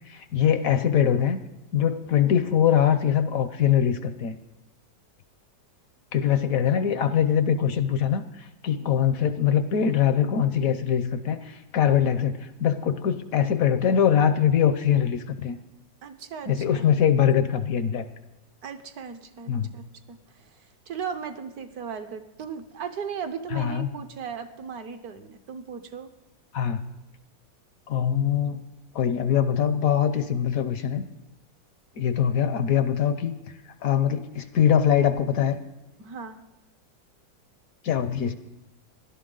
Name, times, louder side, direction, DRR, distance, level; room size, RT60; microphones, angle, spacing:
voice 1, 0.1-1.4 1.7-4.4 6.1-15.6 16.5-18.0 19.5-19.7 23.5-23.9 26.5-26.9 27.9-28.6 28.9-31.0 32.0-33.4 33.8-35.6 37.8-38.4, left 8 dB, 65° left, 11 dB, 0.9 m, -23 dB
voice 2, 16.0-16.9 18.6-20.5 20.9-26.1 36.0-36.4, right 6 dB, 60° right, 8 dB, 1.3 m, -37 dB
17.5 x 12.0 x 3.8 m, 1.0 s
omnidirectional pair, 2.0 m